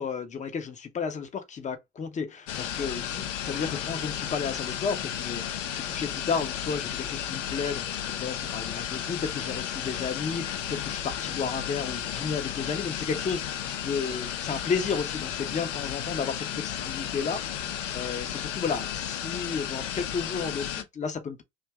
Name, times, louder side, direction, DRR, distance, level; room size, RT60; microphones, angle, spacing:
voice 1, 0.0-7.9 8.2-21.4, left 5 dB, 20° left, 0.6 m, -33 dB
sound 1, 2.5-20.8, left 10 dB, 75° left, 0.6 m, -33 dB
2.6 x 2.3 x 3.2 m
figure-of-eight pair, 65°, 37 cm